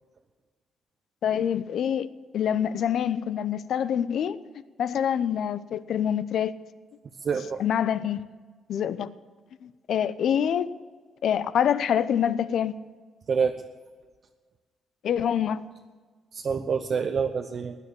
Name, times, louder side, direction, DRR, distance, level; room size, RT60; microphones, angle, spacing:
voice 1, 1.2-2.1 2.3-4.4 4.8-6.5 7.6-8.2 8.7-9.1 9.6-10.7 11.2-12.8 15.0-15.6, left 9 dB, 70° left, 0.7 m, -26 dB
voice 2, 7.2-7.6 13.3-13.6 16.3-17.8, right 6 dB, 50° right, 0.8 m, -27 dB
16.0 x 9.8 x 7.0 m
cardioid pair, 90°, 0 cm